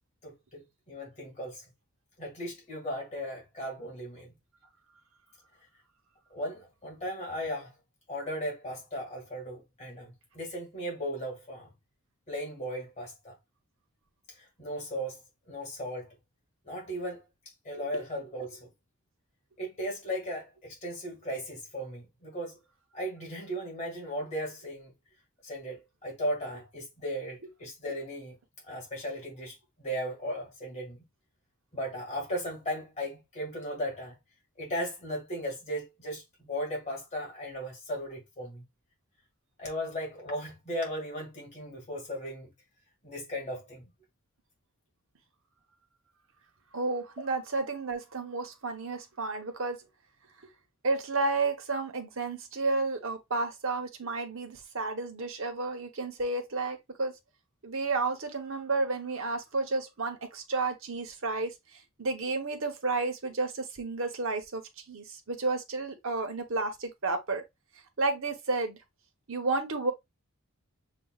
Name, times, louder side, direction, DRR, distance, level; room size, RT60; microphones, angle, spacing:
voice 1, 0.2-1.6 2.2-4.3 6.3-7.7 8.1-11.7 12.3-13.3 14.6-15.2 15.5-16.1 16.7-17.2 17.6-18.7 19.6-22.6 22.9-24.9 25.4-28.4 28.7-31.0 31.7-34.1 34.6-38.6 39.6-42.5 43.0-43.8, equal, 30° left, 1.9 m, -36 dB
voice 2, 46.7-49.8 50.8-57.2 57.6-64.6 64.9-67.4 68.0-68.8 69.3-69.9, right 3 dB, 60° right, 1.0 m, -31 dB
6.9 x 2.4 x 2.4 m
head